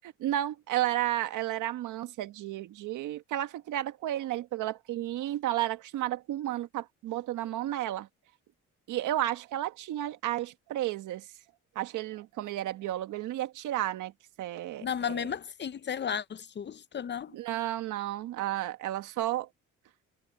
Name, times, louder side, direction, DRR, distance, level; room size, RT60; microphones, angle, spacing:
voice 1, 0.0-8.1 8.9-11.3 11.7-14.1 14.4-15.3 17.3-19.5, right 13 dB, 90° right, 1.7 m, -32 dB
voice 2, 14.8-17.4, left 8 dB, 35° left, 0.6 m, -34 dB
cardioid pair, 90°, 30 cm